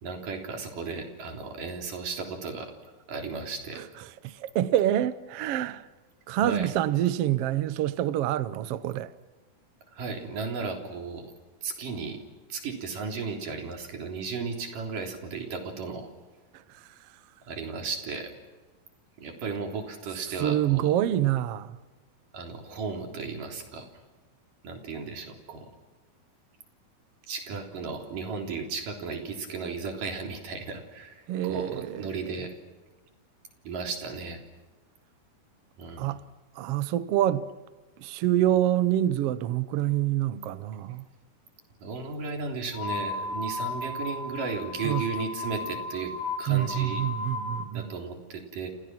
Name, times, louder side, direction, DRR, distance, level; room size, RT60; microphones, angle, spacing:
voice 1, 0.0-2.7 3.1-3.8 6.4-6.7 9.9-11.3 11.6-12.2 12.5-16.1 17.5-18.3 19.2-20.9 22.3-23.9 24.6-25.7 27.3-32.5 33.6-34.4 35.8-36.1 41.8-47.0 47.7-48.7, right 4 dB, 60° right, 5.1 m, -35 dB
voice 2, 4.2-5.9 6.3-9.1 16.5-16.9 20.4-21.8 31.3-32.4 36.0-36.2 36.5-37.5 38.0-41.1 44.8-45.0 46.5-47.9, right 12 dB, 90° right, 1.3 m, -26 dB
sound 1, 42.7-47.7, left 3 dB, 80° left, 4.4 m, -34 dB
29.5 x 28.0 x 6.1 m
omnidirectional pair, 4.2 m